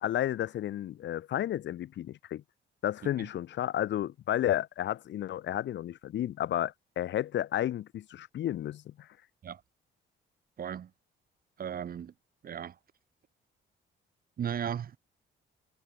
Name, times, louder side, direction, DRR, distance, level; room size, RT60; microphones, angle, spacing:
voice 1, 0.0-2.4 2.8-9.1, left 12 dB, 65° left, 0.8 m, -32 dB
voice 2, 10.6-10.9 11.6-12.1 12.4-12.8 14.4-15.0, right 8 dB, 50° right, 0.9 m, -36 dB
cardioid pair, 90°, 20 cm